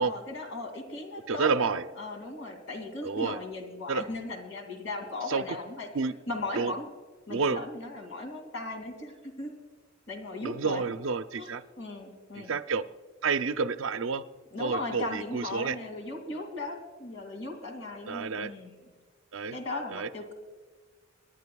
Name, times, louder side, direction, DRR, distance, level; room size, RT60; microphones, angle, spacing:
voice 1, 0.0-5.9 6.3-6.9 7.3-9.5 10.1-10.8 11.4-11.5 11.8-12.6 14.5-18.9 19.5-20.3, left 2 dB, 75° left, 4 dB, 2.6 m, -37 dB
voice 2, 1.3-1.8 3.0-3.4 3.9-4.0 5.3-5.4 5.9-6.1 6.5-6.7 7.3-7.6 10.4-11.6 12.4-12.8 13.2-14.2 14.6-15.7 18.1-18.5 19.3-19.6 19.9-20.1, right 5 dB, 70° right, 11 dB, 0.5 m, -29 dB
27.0 x 10.5 x 2.3 m, 1.5 s
head